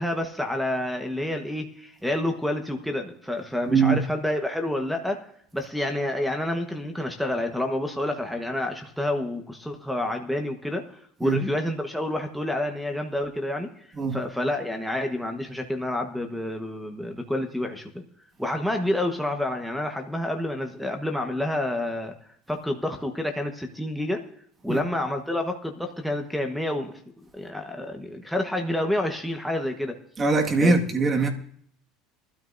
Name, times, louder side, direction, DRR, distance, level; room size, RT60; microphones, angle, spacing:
voice 1, 0.0-5.2 5.5-13.7 14.1-18.0 18.4-22.1 22.5-24.2 24.6-27.0 27.3-30.0 30.6-30.8, left 1 dB, ahead, 1.2 m, -28 dB
voice 2, 3.7-4.0 11.2-11.4 14.0-14.2 24.7-24.8 30.2-31.3, right 4 dB, 25° right, 1.8 m, -22 dB
22.5 x 12.5 x 2.6 m
supercardioid pair, 130°, 0 cm